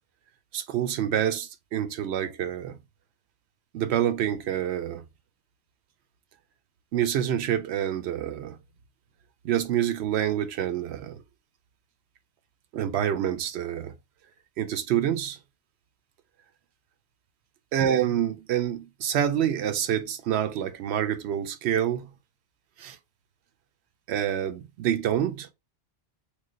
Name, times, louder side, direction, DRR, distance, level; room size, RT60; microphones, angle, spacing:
voice 1, 0.5-2.8 3.7-5.0 6.9-8.6 9.4-11.2 12.7-13.9 14.6-15.4 17.7-22.1 22.8-23.0 24.1-25.5, right 10 dB, 80° right, 0.8 m, -27 dB
3.1 x 2.3 x 3.6 m
omnidirectional pair, 1.1 m